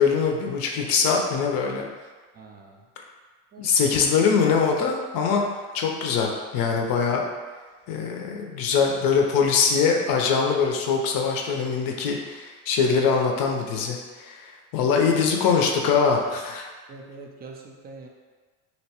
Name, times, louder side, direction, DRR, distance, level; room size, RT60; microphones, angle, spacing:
voice 1, 0.0-1.8 3.6-5.4 5.7-7.2 7.9-14.5 14.7-16.7, left 5 dB, 50° left, 1 dB, 0.6 m, -22 dB
voice 2, 2.3-2.8 3.5-3.7 16.9-18.1, right 3 dB, 25° right, 1 dB, 0.3 m, -44 dB
2.8 x 2.1 x 2.8 m, 1.4 s
hypercardioid pair, 75°, 45 cm